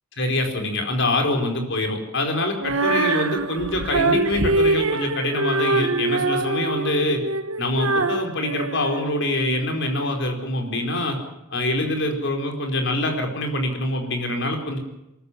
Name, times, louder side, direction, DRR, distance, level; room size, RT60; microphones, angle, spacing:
voice 1, 0.2-7.2 7.6-11.2 11.5-14.8, left 1 dB, 55° left, 4 dB, 4.6 m, -25 dB
Female singing, 2.6-9.7, right 3 dB, 70° right, 1.5 m, -24 dB
23.0 x 14.0 x 9.8 m, 0.91 s
head